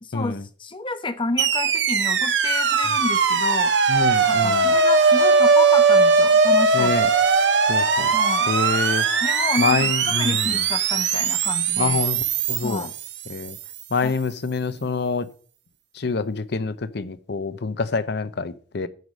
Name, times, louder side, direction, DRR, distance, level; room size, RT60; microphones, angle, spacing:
voice 1, 0.0-3.7 4.3-6.9 8.1-8.5 9.2-12.0 12.6-12.9 14.0-14.1, left 3 dB, 30° left, 0.9 m, -30 dB
sound 1, 1.4-13.6, right 4 dB, 80° right, 1.1 m, -20 dB
voice 2, 3.9-4.7 6.7-7.1 7.7-8.1 8.5-9.1 9.6-10.6 11.8-12.2 12.5-12.9 13.3-13.6 13.9-15.3 16.0-18.9, left 4 dB, 65° left, 0.7 m, -26 dB
9.4 x 4.8 x 6.2 m
head